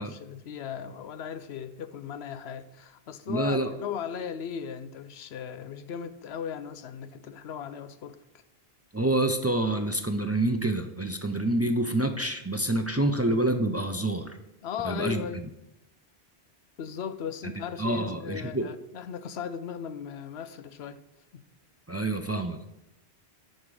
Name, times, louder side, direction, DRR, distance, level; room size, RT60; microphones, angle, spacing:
voice 1, 0.0-8.2 14.6-15.4 16.8-21.0 21.3-21.4, left 8 dB, 80° left, 0.9 m, -37 dB
voice 2, 3.3-3.7 8.9-14.4 14.8-15.3 17.4-18.7 21.9-22.7, right 1 dB, 20° right, 0.4 m, -27 dB
9.8 x 5.3 x 4.8 m
omnidirectional pair, 1.1 m